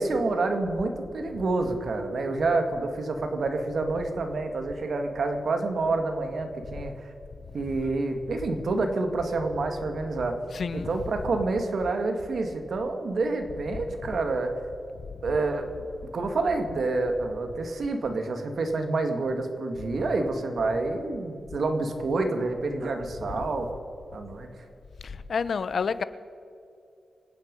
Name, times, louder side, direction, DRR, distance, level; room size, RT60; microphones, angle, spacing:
voice 1, 0.0-6.9 7.5-10.4 10.7-14.5 15.2-15.7 16.1-23.7 24.1-24.5, right 3 dB, 70° right, 5 dB, 2.1 m, -28 dB
voice 2, 10.5-11.0 11.2-11.4 14.0-14.1 15.2-15.3 23.2-23.3 25.0-26.0, left 5 dB, 65° left, 15 dB, 0.7 m, -30 dB
26.0 x 9.5 x 5.5 m, 2.6 s
cardioid pair, 75°, 0 cm